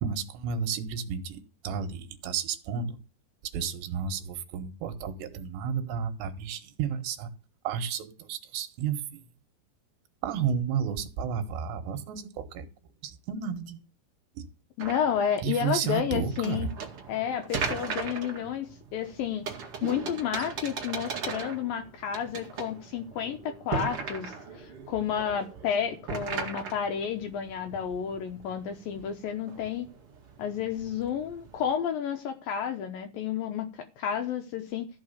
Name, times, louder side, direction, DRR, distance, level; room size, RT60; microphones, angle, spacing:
voice 1, 0.0-3.0 3.5-7.3 7.7-9.2 10.2-12.7 13.0-13.8 14.4-14.5 15.4-16.7, right 7 dB, 75° right, 3.4 m, -32 dB
voice 2, 14.8-16.7 17.1-19.5 19.8-29.9 30.4-34.9, left 8 dB, 75° left, 2.1 m, -31 dB
sound 1, 14.8-31.7, right 5 dB, 45° right, 1.9 m, -39 dB
14.0 x 5.7 x 6.8 m
omnidirectional pair, 5.3 m